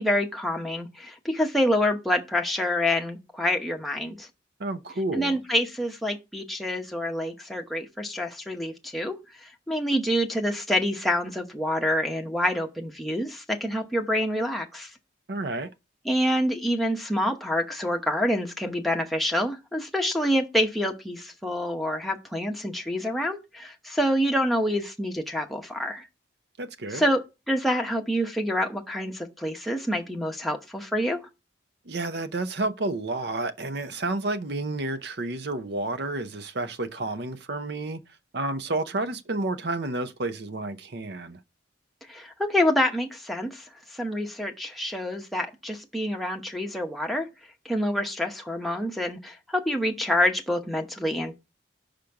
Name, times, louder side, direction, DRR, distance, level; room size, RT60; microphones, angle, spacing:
voice 1, 0.0-4.3 5.1-14.9 16.0-26.1 26.9-31.2 42.1-43.7 43.9-47.3 47.6-51.3, equal, ahead, 0.8 m, -27 dB
voice 2, 4.6-5.4 15.3-15.7 26.6-27.0 31.9-38.0 38.3-41.4, right 2 dB, 55° right, 0.6 m, -30 dB
5.1 x 5.0 x 5.8 m
head